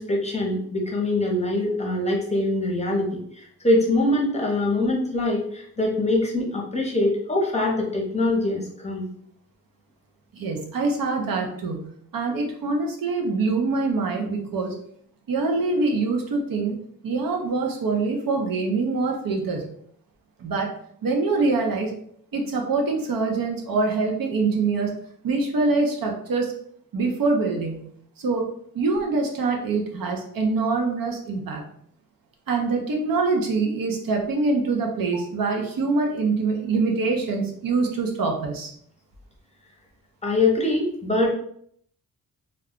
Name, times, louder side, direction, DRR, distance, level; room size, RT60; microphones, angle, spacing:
voice 1, 0.0-9.1 40.2-41.3, left 2 dB, 20° left, -1 dB, 0.6 m, -23 dB
voice 2, 10.3-14.8 15.3-16.8 17.0-19.7 20.4-20.7 21.0-21.9 22.3-24.9 25.2-26.5 26.9-27.9 28.2-28.5 28.7-31.6 32.5-38.7, right 3 dB, 80° right, 2 dB, 0.7 m, -24 dB
2.4 x 2.2 x 3.6 m, 0.65 s
wide cardioid pair, 140°, 34 cm